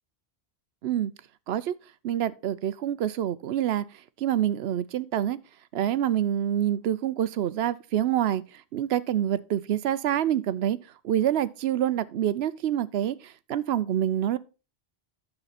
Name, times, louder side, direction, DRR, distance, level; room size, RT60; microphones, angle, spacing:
voice 1, 2.0-3.8 4.2-5.4 5.7-8.4 8.7-10.8 11.0-14.4, right 11 dB, 80° right, 0.9 m, -26 dB
9.8 x 7.0 x 4.1 m
omnidirectional pair, 1.0 m